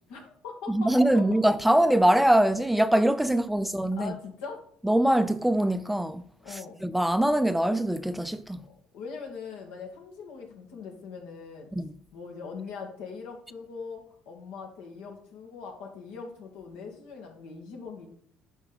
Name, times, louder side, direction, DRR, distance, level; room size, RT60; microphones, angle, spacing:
voice 1, 0.1-1.4 3.5-3.7 4.0-4.6 6.4-6.8 8.6-11.7 12.1-18.1, left 5 dB, 85° left, 2.2 m, -41 dB
voice 2, 0.7-4.1 4.8-8.6 11.7-11.9, right 1 dB, 5° right, 0.5 m, -23 dB
10.5 x 5.4 x 4.1 m
supercardioid pair, 90°, 3 cm